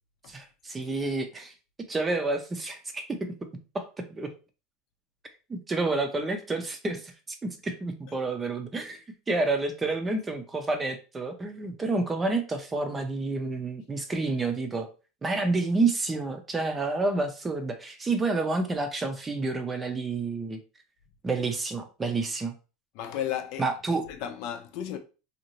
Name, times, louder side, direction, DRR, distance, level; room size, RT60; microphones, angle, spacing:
voice 1, 0.3-1.5 1.9-3.3 3.7-4.3 5.5-14.9 15.2-20.6 21.2-22.5 23.6-24.0, right 3 dB, 20° right, 0.6 m, -29 dB
voice 2, 22.9-25.0, left 10 dB, 60° left, 0.6 m, -35 dB
2.7 x 2.4 x 2.9 m
supercardioid pair, 120°, 0 cm